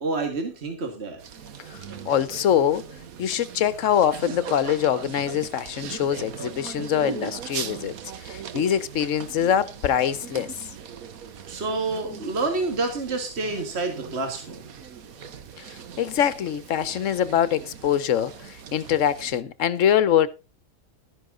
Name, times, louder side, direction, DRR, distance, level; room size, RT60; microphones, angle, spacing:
voice 1, 0.0-1.2 11.5-14.7, right 3 dB, 50° right, 2.2 m, -28 dB
sound 1, 1.2-19.4, right 7 dB, 80° right, 1.5 m, -39 dB
voice 2, 2.0-2.9 3.2-7.9 8.2-10.5 15.6-15.7 16.0-20.3, left 9 dB, 65° left, 1.1 m, -23 dB
12.5 x 10.5 x 3.7 m
omnidirectional pair, 1.5 m